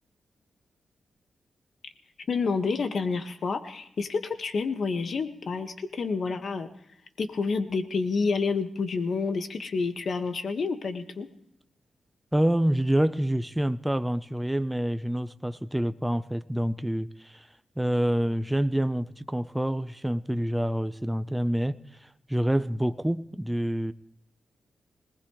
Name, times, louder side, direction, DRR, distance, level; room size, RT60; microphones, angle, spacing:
voice 1, 2.3-6.7 7.2-11.3, left 4 dB, 65° left, 1.7 m, -29 dB
voice 2, 12.3-17.5 17.8-23.9, right 1 dB, 5° right, 0.8 m, -27 dB
21.0 x 19.0 x 3.3 m
cardioid pair, 55°, 0 cm